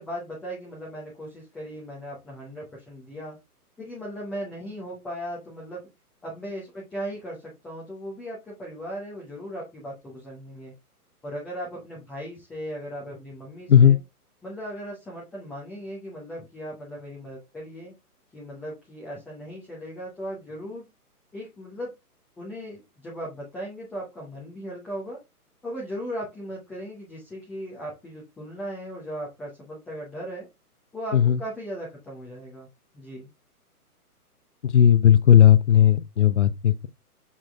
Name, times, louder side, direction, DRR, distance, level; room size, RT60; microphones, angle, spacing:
voice 1, 0.0-3.4 3.8-5.8 6.2-10.7 11.2-14.0 14.4-17.9 18.3-20.9 21.3-21.9 22.4-25.2 25.6-30.5 30.9-32.7 32.9-33.3, equal, 5° left, 0.7 m, -37 dB
voice 2, 34.6-36.9, left 9 dB, 50° left, 0.8 m, -16 dB
7.2 x 4.3 x 3.5 m
figure-of-eight pair, 130°, 46 cm